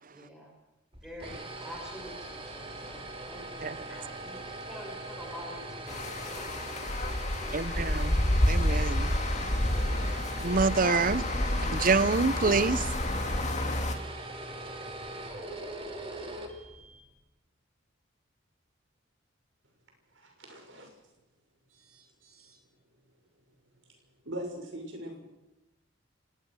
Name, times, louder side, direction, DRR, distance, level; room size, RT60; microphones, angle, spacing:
voice 1, 0.1-0.5 1.0-7.8, equal, 5° right, 6.1 m, -47 dB
sound 1, 0.9-17.1, right 2 dB, 30° right, 2.9 m, -41 dB
sound 2, 5.9-13.9, left 1 dB, 35° left, 1.9 m, -29 dB
voice 2, 7.5-8.2 8.5-9.1 10.4-11.3 11.6-12.9, right 4 dB, 45° right, 0.7 m, -26 dB
voice 3, 20.1-20.9 21.7-22.6 24.2-25.2, right 1 dB, 70° right, 6.4 m, -42 dB
30.0 x 19.0 x 6.3 m
head